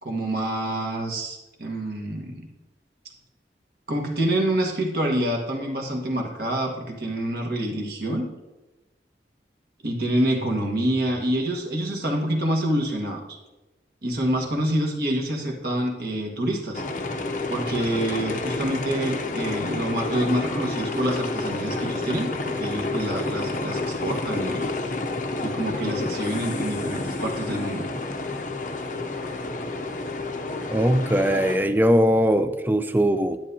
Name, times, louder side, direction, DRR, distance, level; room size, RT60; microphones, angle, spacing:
voice 1, 0.0-2.5 3.9-8.3 9.8-13.2 14.0-16.8 17.5-24.7 25.4-27.8, right 1 dB, 60° right, 0 dB, 1.4 m, -27 dB
sound 1, 16.7-31.6, left 2 dB, 45° left, 0.6 m, -29 dB
voice 2, 30.7-33.4, equal, 10° right, 10 dB, 0.4 m, -20 dB
10.0 x 9.0 x 2.8 m, 1.1 s
head